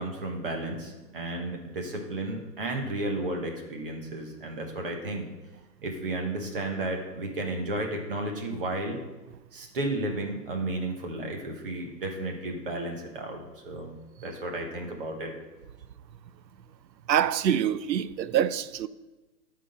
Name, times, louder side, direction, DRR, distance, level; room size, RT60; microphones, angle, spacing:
voice 1, 0.0-5.3 5.8-9.0 9.5-13.9 14.2-15.3, right 2 dB, 35° right, 1.2 m, -33 dB
voice 2, 17.1-18.9, right 9 dB, 90° right, 0.6 m, -25 dB
11.0 x 3.9 x 5.2 m
hypercardioid pair, 165°, 50 cm